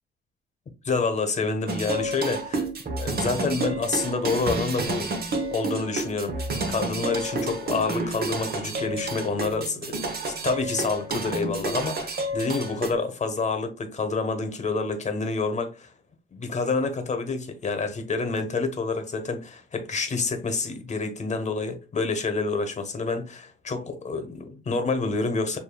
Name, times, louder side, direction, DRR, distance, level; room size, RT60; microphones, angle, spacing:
voice 1, 0.8-5.1 5.5-15.9 16.3-25.6, left 3 dB, 35° left, 1.0 m, -28 dB
sound 1, 1.7-12.9, right 2 dB, 50° right, 1.0 m, -30 dB
6.6 x 2.7 x 2.3 m
cardioid pair, 90°, 20 cm